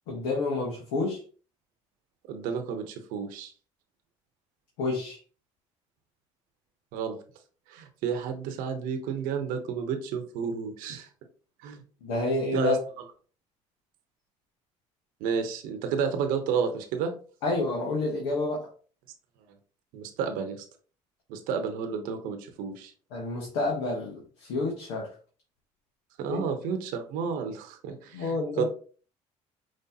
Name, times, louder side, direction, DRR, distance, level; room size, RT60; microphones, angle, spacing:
voice 1, 0.1-1.2 4.8-5.2 12.0-12.8 17.4-18.7 23.1-25.1 26.3-26.4 28.1-28.7, left 3 dB, 90° left, -2 dB, 1.3 m, -29 dB
voice 2, 2.3-3.5 6.9-7.2 7.7-11.1 11.6-11.8 12.5-12.8 15.2-17.1 19.9-20.6 21.3-22.9 26.2-28.7, right 6 dB, 80° right, 7 dB, 0.9 m, -31 dB
5.3 x 3.2 x 2.8 m, 0.40 s
supercardioid pair, 80°, 14 cm